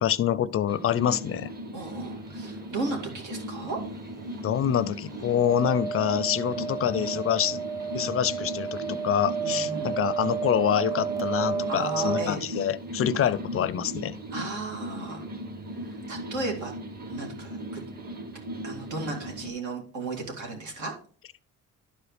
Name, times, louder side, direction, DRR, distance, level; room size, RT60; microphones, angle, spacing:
voice 1, 0.0-1.5 4.4-7.6 7.9-14.1, left 10 dB, 50° left, 18 dB, 0.4 m, -26 dB
sound 1, 0.7-19.5, right 1 dB, 30° right, 1.5 m, -38 dB
voice 2, 1.7-3.8 9.4-9.9 11.7-12.4 13.1-13.3 14.3-15.3 15.8-16.7 17.1-17.8 18.6-20.9, right 3 dB, 75° right, 1 dB, 2.3 m, -35 dB
sound 2, 5.3-12.2, right 6 dB, 10° right, 0.8 m, -31 dB
11.0 x 4.9 x 3.2 m, 0.43 s
cardioid pair, 90°, 30 cm